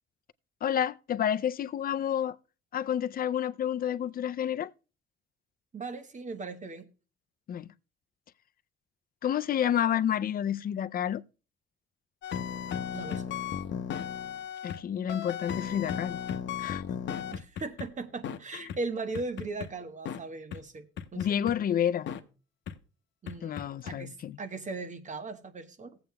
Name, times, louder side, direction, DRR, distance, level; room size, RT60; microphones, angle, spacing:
voice 1, 0.6-2.4 2.7-4.7 7.5-7.7 9.2-11.2 14.6-16.2 16.6-16.8 21.2-22.1 23.4-24.4, left 9 dB, 45° left, 0.5 m, -29 dB
voice 2, 5.7-6.9 12.9-13.2 17.2-20.9 21.1-21.3 23.2-26.0, right 3 dB, 40° right, 1.2 m, -38 dB
sound 1, 12.2-14.8 15.1-17.9 18.2-18.4 18.7-18.8 19.1-19.7 20.1-20.2 20.5-20.6 21.0-21.5 22.1-22.2 22.7-22.8 23.3-24.0, left 8 dB, 70° left, 0.8 m, -35 dB
18.0 x 7.9 x 2.3 m
cardioid pair, 90°, 20 cm